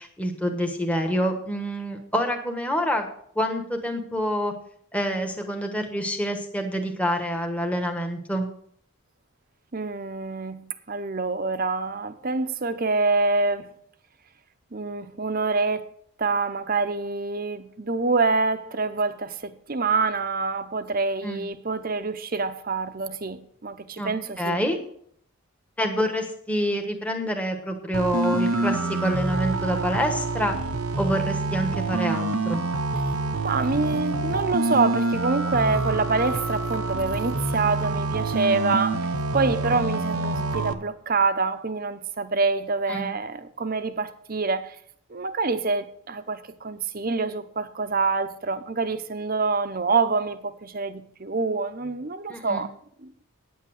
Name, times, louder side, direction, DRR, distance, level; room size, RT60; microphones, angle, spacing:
voice 1, 0.0-3.1 3.3-4.5 4.9-8.5 21.2-21.5 24.0-24.1 24.4-24.8 25.8-30.6 31.0-32.6 42.9-43.1 52.3-52.6, equal, 5° left, 1.2 m, -27 dB
voice 2, 9.7-13.7 14.7-15.8 16.2-24.6 33.4-44.8 45.1-52.7 53.0-53.1, right 4 dB, 40° right, 0.8 m, -26 dB
sound 1, 27.9-40.7, right 2 dB, 85° right, 1.0 m, -26 dB
9.5 x 8.4 x 6.4 m
head